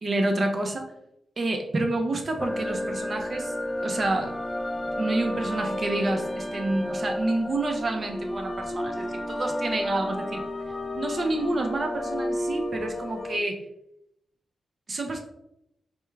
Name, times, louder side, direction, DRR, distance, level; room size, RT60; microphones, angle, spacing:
voice 1, 0.0-0.8 1.4-3.5 3.8-4.3 5.0-10.4 10.9-13.6 14.9-15.2, right 2 dB, 50° right, 4 dB, 0.7 m, -28 dB
sound 1, 2.4-13.4, left 1 dB, 20° left, 0.3 m, -31 dB
4.5 x 2.3 x 3.2 m, 0.82 s
cardioid pair, 55°, 0 cm